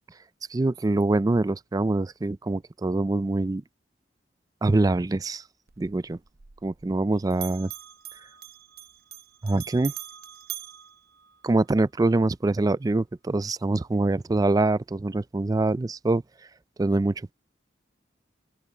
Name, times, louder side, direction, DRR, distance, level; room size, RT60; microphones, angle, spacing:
voice 1, 0.5-3.6 4.6-5.4 5.8-6.2 6.6-7.7 9.4-9.9 11.4-16.2 16.8-17.3, right 2 dB, 20° right, 0.3 m, -24 dB
Bell, 5.7-7.1 7.3-11.8, right 13 dB, 60° right, 0.8 m, -42 dB
open air
head